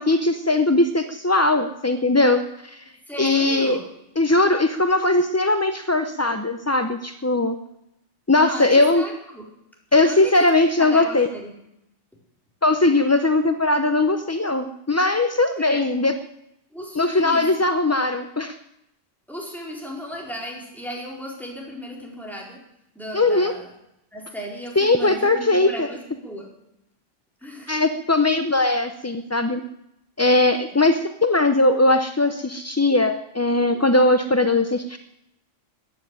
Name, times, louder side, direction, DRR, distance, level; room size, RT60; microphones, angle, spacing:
voice 1, 0.0-2.8 3.2-3.8 4.2-7.6 8.3-9.0 9.9-11.3 12.6-16.1 17.0-18.6 23.1-23.5 24.8-25.9 27.7-29.6 30.2-35.0, left 2 dB, 20° left, 8 dB, 0.4 m, -19 dB
voice 2, 3.1-3.9 8.4-9.4 10.0-10.5 10.8-11.5 15.6-15.8 16.7-17.5 19.3-22.6 22.9-23.7 24.1-26.5 27.4-27.8, equal, ahead, -2 dB, 4.5 m, -35 dB
15.0 x 9.5 x 9.9 m, 0.83 s
omnidirectional pair, 1.3 m